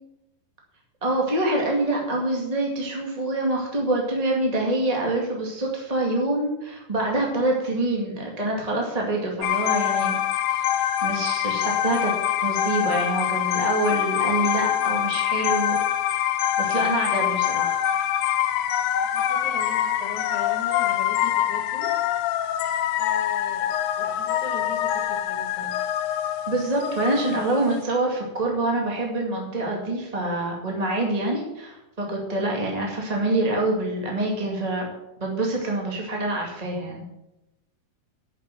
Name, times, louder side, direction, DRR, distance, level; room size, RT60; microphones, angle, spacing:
voice 1, 1.0-10.2 10.5-12.1 12.4-15.8 16.6-17.8 26.3-34.9 35.2-37.0, right 2 dB, 20° right, -1 dB, 1.1 m, -26 dB
sound 1, 9.4-27.8, left 11 dB, 80° left, 1.8 m, -25 dB
voice 2, 19.1-21.9 23.0-25.8, left 4 dB, 55° left, 2 dB, 3.2 m, -40 dB
10.5 x 7.0 x 7.6 m, 0.91 s
omnidirectional pair, 4.4 m